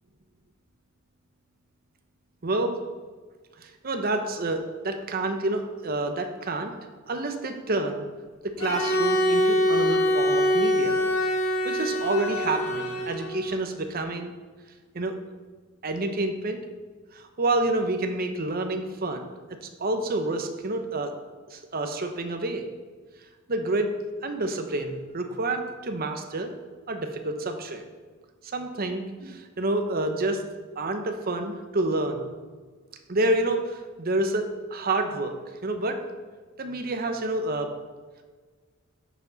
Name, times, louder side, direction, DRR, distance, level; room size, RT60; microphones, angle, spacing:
voice 1, 2.4-2.8 3.6-6.7 7.1-8.1 8.4-11.0 11.6-14.3 14.9-15.1 15.8-16.6 17.1-19.3 19.8-21.1 21.5-22.6 23.5-23.9 24.2-26.5 26.9-27.8 28.4-30.4 30.8-32.2 33.1-35.4 35.6-36.0 36.6-37.7, right 2 dB, 45° right, 6 dB, 0.9 m, -28 dB
Bowed string instrument, 8.6-13.6, equal, 90° left, 2.1 m, -24 dB
10.5 x 7.1 x 4.0 m, 1.4 s
head